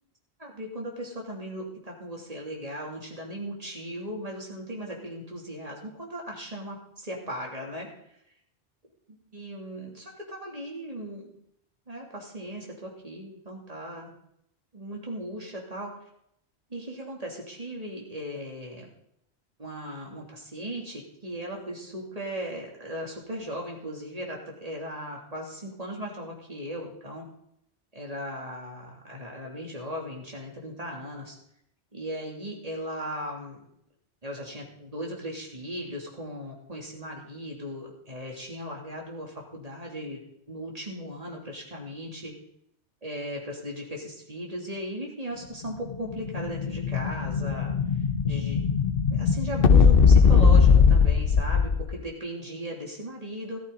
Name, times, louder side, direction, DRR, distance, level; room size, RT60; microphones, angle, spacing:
voice 1, 0.4-7.9 9.3-11.3 11.9-14.1 14.7-15.9 16.7-18.9 19.6-27.3 27.9-31.4 31.9-33.6 34.2-40.2 40.5-42.3 43.0-47.7 48.2-48.6 49.1-53.6, equal, 35° right, -1 dB, 3.2 m, -37 dB
Explosion, 45.9-52.0, left 6 dB, 60° left, 1.0 m, -20 dB
14.0 x 14.0 x 4.1 m, 0.73 s
omnidirectional pair, 1.1 m